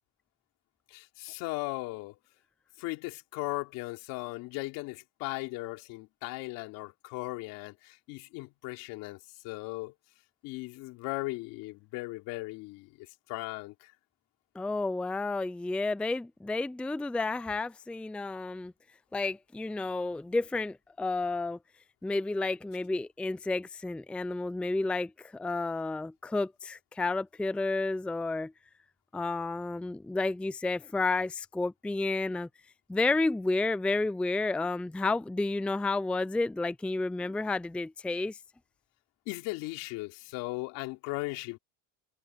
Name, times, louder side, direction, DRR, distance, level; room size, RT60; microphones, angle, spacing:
voice 1, 0.9-2.2 2.8-9.2 9.4-9.9 10.4-13.9 37.2-37.3 39.2-41.6, left 22 dB, 75° left, 3.5 m, -37 dB
voice 2, 14.6-18.7 19.1-21.6 22.0-28.5 29.1-32.5 32.9-38.4, left 3 dB, 5° left, 0.4 m, -31 dB
supercardioid pair, 110°, 34 cm